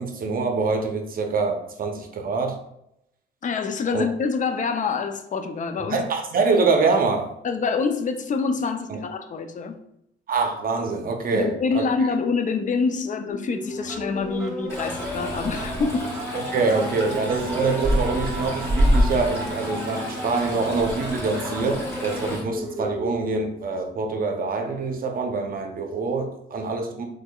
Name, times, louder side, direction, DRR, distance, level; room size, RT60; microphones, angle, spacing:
voice 1, 0.0-2.6 3.9-4.0 5.9-7.3 8.9-9.0 10.3-11.8 16.3-27.0, right 4 dB, 45° right, 0.6 m, -25 dB
voice 2, 3.4-6.1 7.4-9.8 11.3-16.2, left 5 dB, 40° left, 0.4 m, -26 dB
sound 1, 13.3-23.3, equal, 5° right, 0.9 m, -34 dB
Stream, 14.7-22.4, equal, 15° left, 1.5 m, -27 dB
3.5 x 3.3 x 2.3 m
cardioid pair, 90°, 20 cm